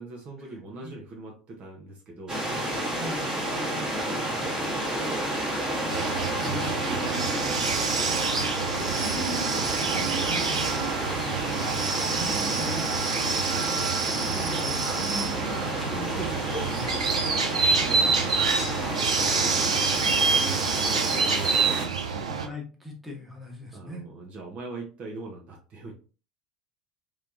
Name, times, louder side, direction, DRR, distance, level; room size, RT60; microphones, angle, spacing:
voice 1, 0.0-2.4 3.2-5.4 5.9-6.7 17.3-22.4 23.7-25.9, right 2 dB, 40° right, 0 dB, 1.0 m, -42 dB
sound 1, 2.3-21.8, right 1 dB, 20° right, 1.5 m, -31 dB
voice 2, 2.9-3.3 6.4-6.8 7.2-7.8 9.0-17.4 22.3-24.0, equal, ahead, -1 dB, 1.2 m, -40 dB
sound 2, 5.9-22.5, right 5 dB, 75° right, 0.5 m, -27 dB
3.3 x 3.2 x 2.6 m, 0.36 s
figure-of-eight pair, 70°, 4 cm